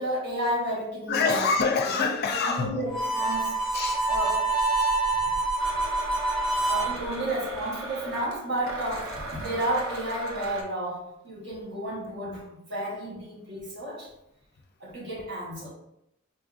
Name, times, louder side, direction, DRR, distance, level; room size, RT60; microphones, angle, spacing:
voice 1, 0.0-1.5 2.6-3.8 4.1-4.6 6.7-14.1 14.8-15.7, right 1 dB, 55° right, -3 dB, 1.0 m, -32 dB
voice 2, 1.1-2.8 3.7-4.0 5.2-5.4, left 4 dB, 50° left, 3 dB, 0.4 m, -26 dB
Harmonica, 2.9-7.0, right 3 dB, ahead, 0.7 m, -26 dB
Domestic sounds home sounds, 5.6-10.6, right 1 dB, 90° right, 0.7 m, -38 dB
4.1 x 2.5 x 2.4 m, 0.83 s
head